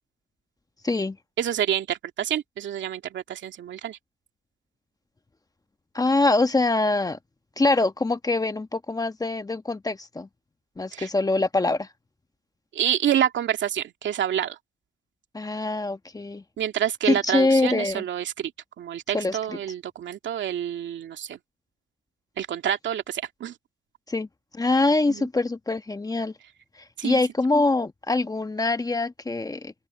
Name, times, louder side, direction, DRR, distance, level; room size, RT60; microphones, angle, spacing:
voice 1, 0.8-1.2 5.9-7.2 7.6-10.3 10.8-11.9 15.3-16.4 17.1-18.0 19.1-19.4 24.1-24.3 24.5-26.3 27.0-29.7, left 2 dB, 20° left, 1.2 m, -24 dB
voice 2, 1.4-4.0 10.9-11.1 12.7-14.6 16.6-18.5 18.8-21.4 22.4-23.5 25.1-25.3 27.0-27.2, right 10 dB, 70° right, 2.4 m, -27 dB
open air
cardioid pair, 90°, 20 cm